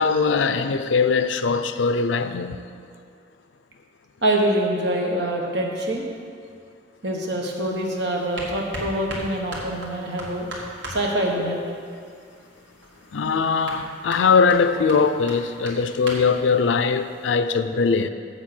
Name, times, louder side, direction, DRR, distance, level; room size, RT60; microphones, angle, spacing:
voice 1, 0.0-2.6 13.1-18.1, left 5 dB, 90° left, 0.5 m, -21 dB
voice 2, 4.2-6.0 7.0-10.5 10.9-11.6, right 1 dB, 70° right, 1.4 m, -25 dB
sound 1, 7.5-17.3, right 1 dB, 85° right, 1.9 m, -39 dB
7.6 x 7.4 x 6.0 m
head